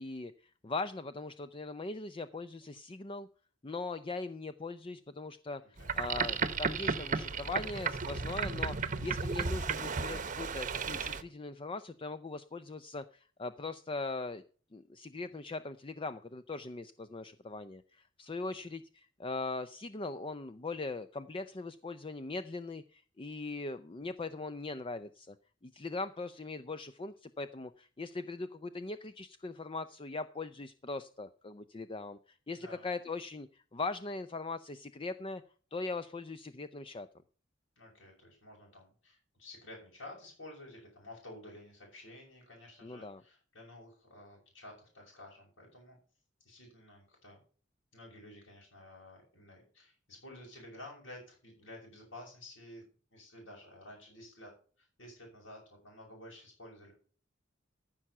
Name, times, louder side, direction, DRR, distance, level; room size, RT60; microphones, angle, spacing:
voice 1, 0.0-3.3 3.6-14.4 14.7-25.4 25.6-35.4 35.7-37.1 42.8-43.2, left 3 dB, 25° left, 12 dB, 0.5 m, -40 dB
voice 2, 5.6-5.9 18.6-18.7 32.5-32.8 37.8-46.0 46.4-47.4 47.9-52.8 53.1-56.9, left 1 dB, 70° left, -5 dB, 6.1 m, -52 dB
Boat Water vehicle, 5.8-11.2, right 5 dB, 40° right, 0.9 m, -34 dB
15.0 x 6.1 x 5.5 m, 0.41 s
head